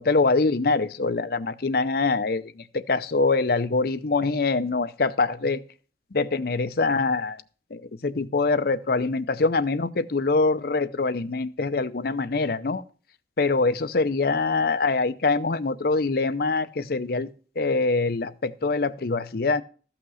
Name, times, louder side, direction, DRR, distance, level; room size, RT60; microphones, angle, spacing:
voice 1, 0.0-5.6 6.1-7.4 7.7-12.8 13.4-17.3 17.6-19.6, left 3 dB, 55° left, 0.6 m, -24 dB
14.0 x 5.9 x 6.2 m
head